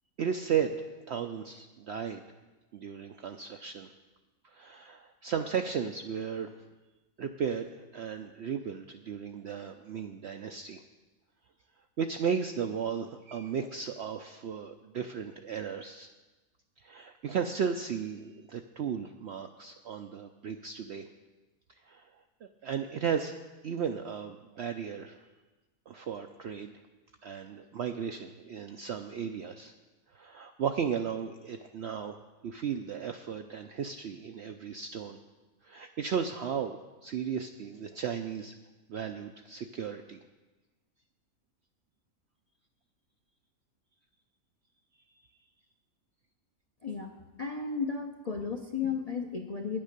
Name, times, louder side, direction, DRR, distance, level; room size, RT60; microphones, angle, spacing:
voice 1, 0.2-2.2 2.7-3.9 4.4-6.5 7.2-10.8 12.0-16.1 16.8-21.1 21.9-22.1 22.6-23.4 23.6-25.2 25.9-26.7 27.2-29.7 30.1-32.2 32.4-35.2 35.6-38.5 38.9-40.2, right 7 dB, 65° right, 6 dB, 0.6 m, -35 dB
voice 2, 47.4-49.8, left 5 dB, 40° left, 4 dB, 0.6 m, -34 dB
10.0 x 9.0 x 6.6 m, 1.2 s
omnidirectional pair, 1.6 m